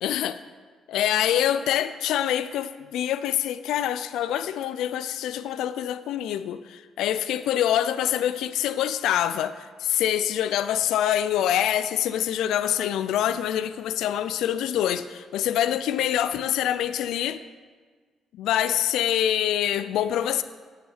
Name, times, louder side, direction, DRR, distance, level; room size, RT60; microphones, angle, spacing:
voice 1, 0.0-0.4 0.9-17.4 18.4-20.4, left 11 dB, 85° left, 0.3 m, -25 dB
8.6 x 5.8 x 5.6 m
cardioid pair, 90°, 0 cm